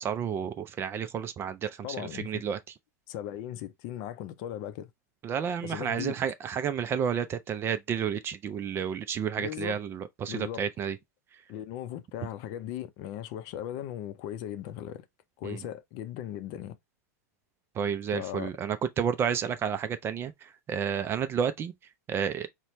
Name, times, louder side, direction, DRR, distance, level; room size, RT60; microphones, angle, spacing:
voice 1, 0.0-2.6 5.2-11.0 15.4-15.6 17.8-20.3 20.7-21.7 22.1-22.5, right 7 dB, 25° right, 0.4 m, -31 dB
voice 2, 1.8-2.4 3.1-4.9 5.6-6.1 9.4-9.8 10.3-10.6 11.5-15.0 15.4-16.8 18.1-18.5, left 11 dB, 50° left, 0.5 m, -38 dB
4.2 x 2.2 x 3.1 m
hypercardioid pair, 125°, 9 cm